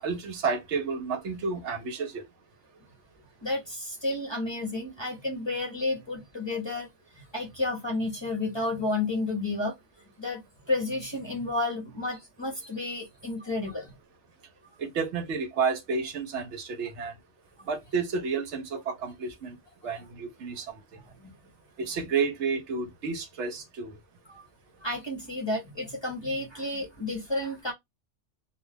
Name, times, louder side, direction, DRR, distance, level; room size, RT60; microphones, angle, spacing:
voice 1, 0.0-2.2 14.8-17.1 17.7-19.6 19.8-20.6 21.8-23.9, right 5 dB, 75° right, 1.0 m, -31 dB
voice 2, 3.4-6.9 7.2-9.8 10.2-13.9 17.6-17.7 19.9-20.0 21.2-21.3 24.3-24.4 24.8-27.7, left 2 dB, 25° left, 0.7 m, -31 dB
2.3 x 2.2 x 3.3 m
omnidirectional pair, 1.2 m